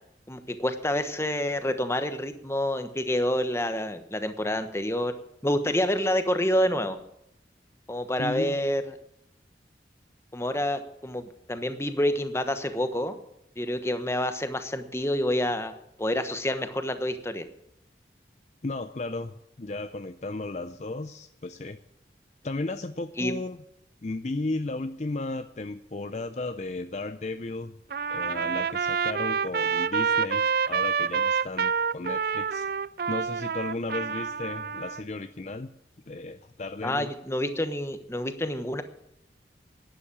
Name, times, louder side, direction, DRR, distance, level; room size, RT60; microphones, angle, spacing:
voice 1, 0.3-5.1 5.4-7.0 7.9-8.8 10.3-13.2 13.6-15.7 16.0-17.4 23.2-23.3 36.8-38.8, left 1 dB, 15° left, 9 dB, 1.1 m, -28 dB
voice 2, 8.2-8.6 18.6-21.8 22.4-23.6 24.0-27.8 28.1-32.7 33.1-35.7 36.1-37.1, left 2 dB, 40° left, 10 dB, 0.6 m, -34 dB
Trumpet, 27.9-35.0, right 6 dB, 55° right, 0.4 m, -27 dB
11.5 x 10.5 x 8.5 m, 0.82 s
head